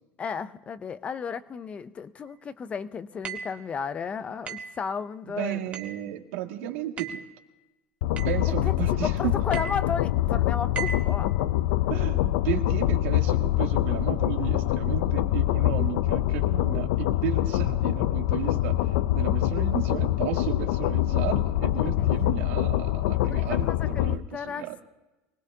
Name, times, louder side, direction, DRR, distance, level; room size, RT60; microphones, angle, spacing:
voice 1, 0.2-5.6 8.5-11.3 22.0-22.1 23.2-24.8, left 6 dB, 20° left, 14 dB, 0.5 m, -34 dB
sound 1, 3.2-3.6 4.5-4.8 5.7-6.0 7.0-7.3 8.2-8.5 9.5-9.9 10.8-11.1, right 7 dB, 20° right, 1.4 m, -36 dB
voice 2, 5.4-7.2 8.2-9.4 11.9-24.8, right 12 dB, 85° right, 3 dB, 2.0 m, -34 dB
sound 2, 8.0-24.1, left 14 dB, 75° left, 0.5 m, -25 dB
24.0 x 19.5 x 2.7 m, 1.1 s
cardioid pair, 175°, 7 cm